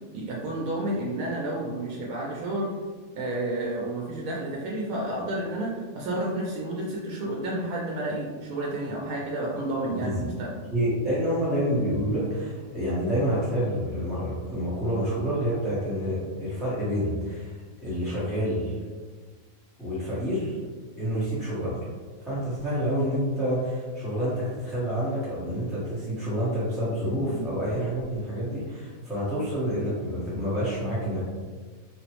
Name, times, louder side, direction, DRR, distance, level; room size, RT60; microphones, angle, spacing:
voice 1, 0.1-2.7 3.2-10.5 27.3-27.5, right 1 dB, 80° right, -3 dB, 1.0 m, -31 dB
voice 2, 9.9-10.2 10.7-17.5 17.8-18.7 19.8-20.6 21.0-21.8 22.2-31.2, equal, ahead, -11 dB, 0.5 m, -28 dB
3.6 x 2.0 x 2.9 m, 1.4 s
omnidirectional pair, 1.5 m